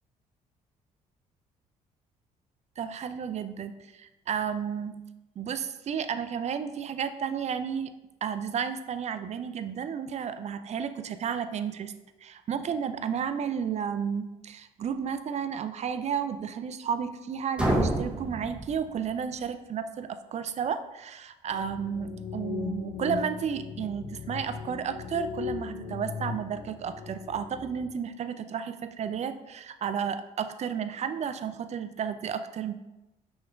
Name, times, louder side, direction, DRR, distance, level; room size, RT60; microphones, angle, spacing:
voice 1, 2.8-5.0 5.4-7.9 8.2-11.9 12.2-32.7, right 7 dB, 40° right, 11 dB, 0.4 m, -32 dB
sound 1, 17.6-19.4, right 1 dB, 5° right, 1.1 m, -29 dB
sound 2, 21.5-27.9, left 6 dB, 45° left, 0.6 m, -38 dB
5.8 x 3.1 x 2.5 m, 0.99 s
hypercardioid pair, 50°, 18 cm